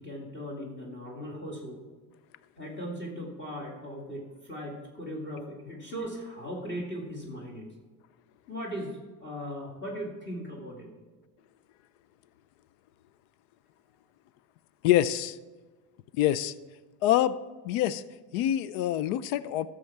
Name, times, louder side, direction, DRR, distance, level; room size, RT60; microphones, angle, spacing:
voice 1, 0.0-1.8 2.6-7.7 8.5-10.9, equal, 25° left, -1 dB, 2.3 m, -38 dB
voice 2, 14.8-15.4 16.2-16.5 17.0-17.4 17.6-18.0 18.3-19.7, left 12 dB, 80° left, 17 dB, 0.6 m, -25 dB
13.0 x 7.0 x 4.7 m, 1.3 s
cardioid pair, 125°, 45 cm